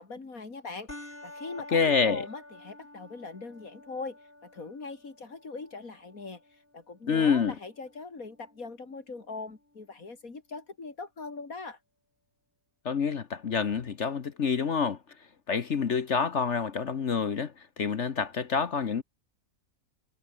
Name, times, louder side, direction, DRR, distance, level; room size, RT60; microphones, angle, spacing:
voice 1, 0.0-11.8, left 3 dB, 70° left, 3.8 m, -41 dB
sound 1, 0.9-9.9, left 1 dB, 35° left, 6.0 m, -51 dB
voice 2, 1.7-2.3 7.1-7.5 12.8-15.0 15.5-19.0, left 6 dB, 50° left, 1.4 m, -27 dB
omnidirectional pair, 1.6 m